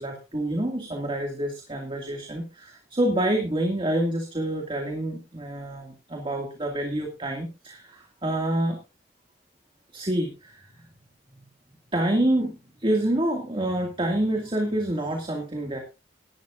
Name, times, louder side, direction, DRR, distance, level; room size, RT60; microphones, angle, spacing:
voice 1, 0.0-8.8 9.9-10.9 11.9-15.8, right 1 dB, 30° right, 2 dB, 2.4 m, -27 dB
18.0 x 12.0 x 2.6 m, 0.29 s
head